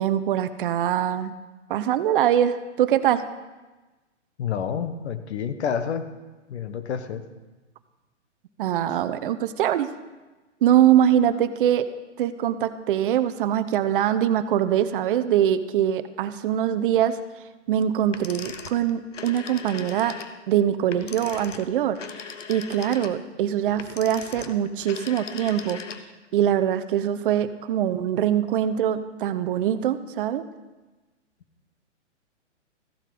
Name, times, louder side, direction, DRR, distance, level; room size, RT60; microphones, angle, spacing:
voice 1, 0.0-1.4 1.7-3.2 8.6-9.9 10.6-11.9 12.2-17.2 17.7-20.1 20.5-22.0 22.5-25.8 26.3-30.4, right 10 dB, 45° right, 12 dB, 0.7 m, -23 dB
voice 2, 4.4-6.1 6.5-7.2, left 7 dB, 65° left, 10 dB, 1.1 m, -29 dB
sound 1, 18.1-26.3, left 6 dB, 85° left, 1.0 m, -39 dB
14.5 x 7.3 x 5.1 m, 1.2 s
hypercardioid pair, 135°, 36 cm